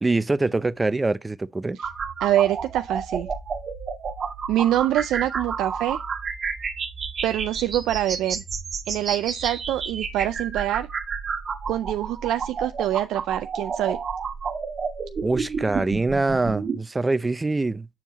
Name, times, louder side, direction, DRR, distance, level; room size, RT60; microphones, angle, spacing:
voice 1, 0.0-1.8 15.2-17.9, right 3 dB, 20° right, 0.5 m, -24 dB
sound 1, 1.8-16.8, right 5 dB, 50° right, 1.4 m, -31 dB
voice 2, 2.2-3.3 4.5-6.0 7.2-8.4 8.9-10.9 11.7-14.0, right 13 dB, 90° right, 0.3 m, -25 dB
7.2 x 4.6 x 2.9 m
cardioid pair, 90°, 0 cm